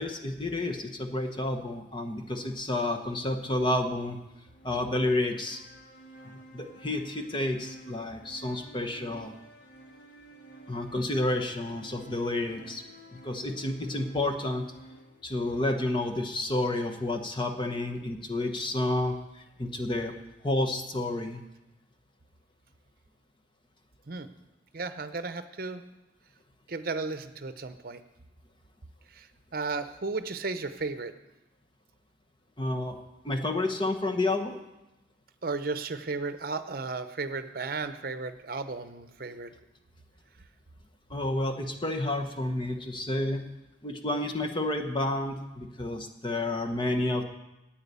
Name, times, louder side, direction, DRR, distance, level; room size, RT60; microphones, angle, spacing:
voice 1, 0.0-4.2 4.6-5.6 6.2-9.3 10.7-12.8 13.1-14.7 15.2-20.1 20.4-21.4 32.6-33.0 33.2-34.6 41.1-43.4 43.8-47.2, left 2 dB, 25° left, 5 dB, 1.0 m, -30 dB
sound 1, 2.2-16.2, right 1 dB, 70° left, 1.7 m, -53 dB
voice 2, 24.7-25.8 26.7-28.0 29.2-29.3 29.5-31.1 35.4-39.5, right 3 dB, 55° right, 10 dB, 0.8 m, -34 dB
9.6 x 8.9 x 8.2 m, 0.96 s
head